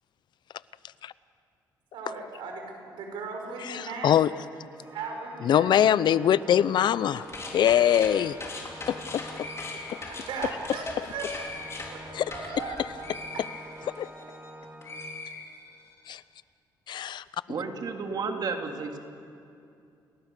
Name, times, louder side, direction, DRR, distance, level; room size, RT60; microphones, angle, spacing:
voice 1, 1.9-4.3 4.9-5.8 10.1-11.3 11.8-12.0 12.3-13.4, right 4 dB, 85° right, 2 dB, 5.0 m, -37 dB
voice 2, 3.7-4.3 5.4-7.3 7.5-8.4 8.9-9.2 14.0-14.1 16.1-16.2 16.9-17.2, left 10 dB, 65° left, 18 dB, 0.6 m, -22 dB
Organ, 4.7-15.5, right 1 dB, 20° right, 2.5 m, -46 dB
sound 1, 7.1-14.5 14.8-16.0, left 3 dB, 35° left, 4.1 m, -40 dB
voice 3, 17.5-19.0, right 4 dB, 55° right, 4 dB, 2.5 m, -32 dB
30.0 x 18.5 x 6.8 m, 2.5 s
cardioid pair, 105°, 8 cm